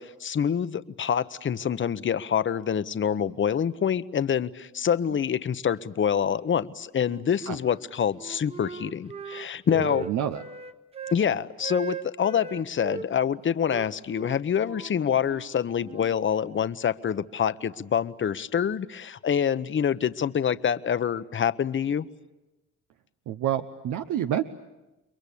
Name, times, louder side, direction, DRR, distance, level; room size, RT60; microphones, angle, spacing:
voice 1, 0.0-10.1 11.1-22.1, left 8 dB, 40° left, 14 dB, 0.9 m, -26 dB
Wind instrument woodwind instrument, 7.0-7.8 8.1-11.2 11.6-13.1 13.6-16.1, right 5 dB, 20° right, 1.2 m, -39 dB
voice 2, 10.0-10.4 23.3-24.4, right 11 dB, 80° right, 7 dB, 1.0 m, -28 dB
29.5 x 22.5 x 8.5 m, 1.0 s
cardioid pair, 90°, 30 cm